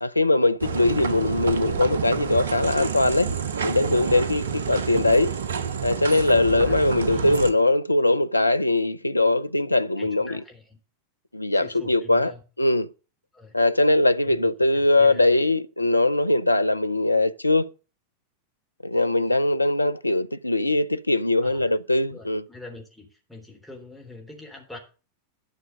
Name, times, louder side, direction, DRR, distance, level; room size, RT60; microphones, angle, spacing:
voice 1, 0.0-3.3 3.6-5.4 5.8-10.4 11.3-12.3 12.6-12.9 13.5-17.7 18.8-22.4, left 2 dB, 85° left, 0.5 m, -21 dB
sound 1, 0.6-7.5, right 6 dB, 65° right, 0.9 m, -29 dB
voice 2, 6.7-7.5 10.0-10.8 11.5-12.4 13.3-13.5 14.2-15.3 21.4-21.8 22.1-24.8, left 2 dB, ahead, 3.5 m, -44 dB
11.5 x 6.2 x 6.4 m
figure-of-eight pair, 90°, 0 cm